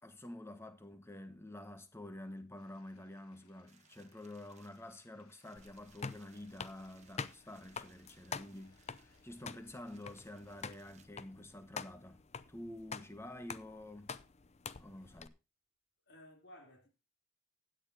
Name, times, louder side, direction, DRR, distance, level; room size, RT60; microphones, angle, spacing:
voice 1, 0.0-12.2 12.5-14.1 14.8-15.3, left 1 dB, 10° left, 1.5 m, -49 dB
Bathtub (filling or washing), 2.6-10.6, left 5 dB, 90° left, 2.4 m, -72 dB
sound 1, 3.7-11.1, right 7 dB, 30° right, 1.3 m, -69 dB
sound 2, 5.6-15.3, left 5 dB, 30° left, 0.6 m, -47 dB
voice 2, 16.1-16.9, equal, 50° left, 3.6 m, -57 dB
16.5 x 10.5 x 2.9 m
head